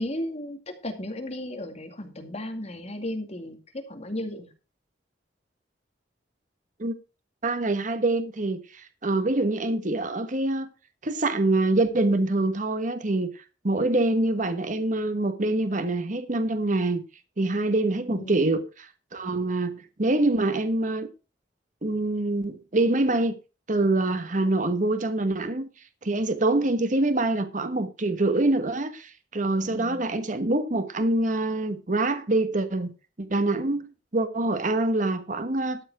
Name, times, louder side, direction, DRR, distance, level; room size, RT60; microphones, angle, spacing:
voice 1, 0.0-4.5 18.1-18.4 29.7-30.0, left 1 dB, 40° left, 2.3 m, -35 dB
voice 2, 7.4-10.7 11.0-13.3 13.6-17.0 17.4-21.1 21.8-23.3 23.7-25.7 26.0-32.9 33.2-33.9 34.1-35.8, right 2 dB, 45° right, 1.2 m, -25 dB
13.0 x 7.3 x 4.8 m
head